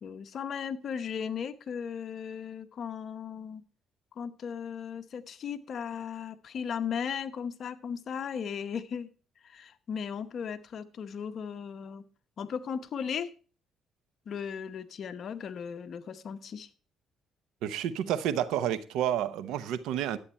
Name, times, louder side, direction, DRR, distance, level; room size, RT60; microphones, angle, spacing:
voice 1, 0.0-3.6 4.1-9.1 9.4-12.0 12.4-13.3 14.3-16.7, left 7 dB, 55° left, 0.8 m, -36 dB
voice 2, 17.6-20.2, right 10 dB, 90° right, 0.8 m, -30 dB
11.5 x 8.6 x 4.3 m
cardioid pair, 105°, 0 cm